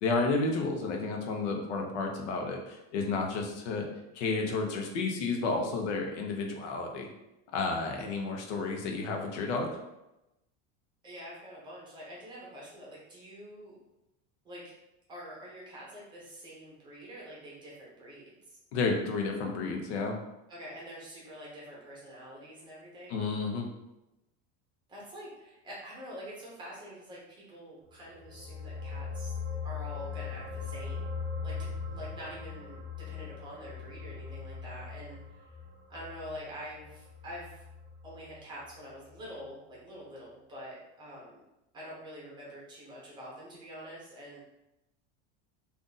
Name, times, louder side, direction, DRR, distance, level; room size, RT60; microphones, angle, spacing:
voice 1, 0.0-3.8 4.1-7.1 7.5-9.7 18.7-20.2 23.1-23.6, left 3 dB, 85° left, 2 dB, 0.8 m, -31 dB
voice 2, 11.0-13.8 14.4-14.7 15.1-18.3 20.5-23.2 24.9-29.3 29.6-31.0 31.4-32.8 33.1-35.4 35.9-37.6 38.0-41.4 41.7-44.4, equal, 15° right, -6 dB, 0.7 m, -46 dB
sound 1, 28.0-38.7 39.1-39.2, left 5 dB, 60° right, 0.6 m, -40 dB
2.5 x 2.5 x 3.8 m, 0.93 s
supercardioid pair, 180°, 34 cm